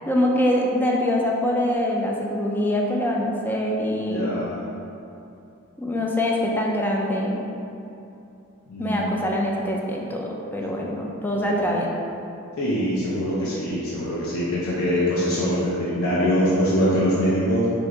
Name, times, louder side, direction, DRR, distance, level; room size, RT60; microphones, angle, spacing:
voice 1, 0.1-4.3 5.8-7.4 8.8-11.9, left 1 dB, 10° left, -2 dB, 0.4 m, -24 dB
voice 2, 4.1-4.7 8.7-9.1 11.4-11.5 12.6-17.7, equal, 75° left, -7 dB, 0.7 m, -23 dB
4.5 x 2.6 x 3.7 m, 2.7 s
head